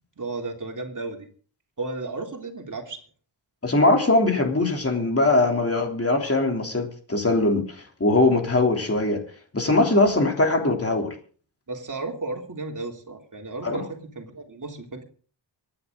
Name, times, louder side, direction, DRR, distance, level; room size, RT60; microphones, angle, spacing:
voice 1, 0.2-1.3 1.8-3.0 11.7-15.0, right 3 dB, 40° right, 3.2 m, -34 dB
voice 2, 3.6-9.2 9.5-11.1 13.6-13.8, left 2 dB, 30° left, 3.3 m, -21 dB
25.0 x 10.0 x 3.9 m
wide cardioid pair, 125°, 45 cm